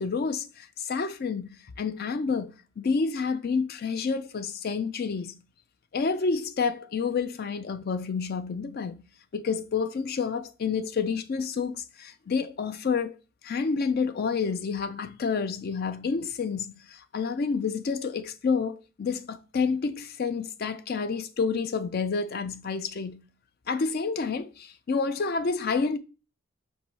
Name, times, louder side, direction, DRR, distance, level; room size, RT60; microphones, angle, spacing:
voice 1, 0.0-5.4 5.9-9.0 9.3-13.2 13.4-23.2 23.7-26.0, left 5 dB, 45° left, 0.4 m, -29 dB
4.6 x 2.6 x 4.1 m
head